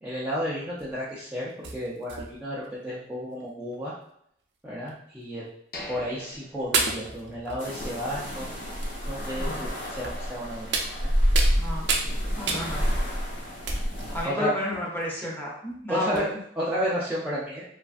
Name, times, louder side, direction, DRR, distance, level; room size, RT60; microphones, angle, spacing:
voice 1, 0.0-3.9 4.6-5.4 5.9-8.5 9.1-11.1 14.2-14.5 15.9-16.3 16.6-17.6, equal, 10° right, -8 dB, 0.4 m, -32 dB
sound 1, 0.8-1.0 1.6-2.7 3.4-3.5 3.7-3.8 4.9-5.0 6.0-6.1 6.7-8.1 8.8-8.9 10.0-10.3 10.7-11.6 11.9-12.1 12.5-13.1 13.7-14.2 14.7-15.0 15.7-15.8 16.2-16.3, right 4 dB, 75° right, 0.5 m, -31 dB
sound 2, 5.7-7.7 8.0-8.1 8.6-8.8, left 1 dB, 55° left, 0.5 m, -43 dB
sound 3, 7.6-14.3, equal, 85° left, 1.1 m, -28 dB
voice 2, 11.5-11.9 12.3-12.8 14.1-16.4, left 1 dB, 10° left, -5 dB, 0.8 m, -31 dB
3.1 x 2.4 x 2.4 m, 0.71 s
head